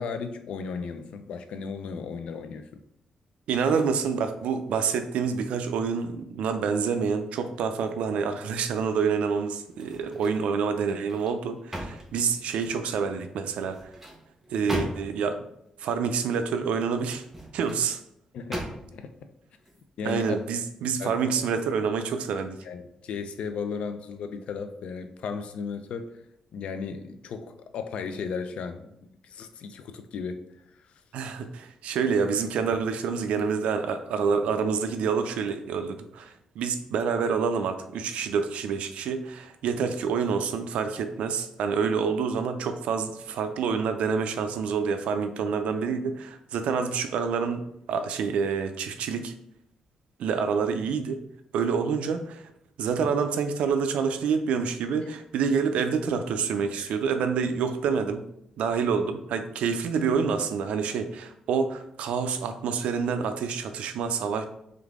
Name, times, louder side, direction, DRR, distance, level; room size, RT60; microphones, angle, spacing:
voice 1, 0.0-2.8 18.3-19.1 20.0-20.4 21.0-21.3 22.6-26.2 26.5-28.9 29.2-30.4 53.0-53.1 56.7-57.0 58.8-58.9, left 5 dB, 70° left, 0.5 m, -35 dB
voice 2, 3.5-13.8 14.5-15.4 15.8-17.2 17.5-18.0 20.0-22.6 31.1-47.6 47.9-49.3 50.2-51.2 51.5-52.4 52.8-58.2 58.6-64.4, right 6 dB, 90° right, 0.5 m, -27 dB
sound 1, 9.7-10.5 10.9-12.8 13.6-15.3 17.1-17.9 18.5-19.1 19.6-19.8, equal, 10° right, 0.9 m, -37 dB
3.7 x 3.4 x 3.6 m
cardioid pair, 140°, 2 cm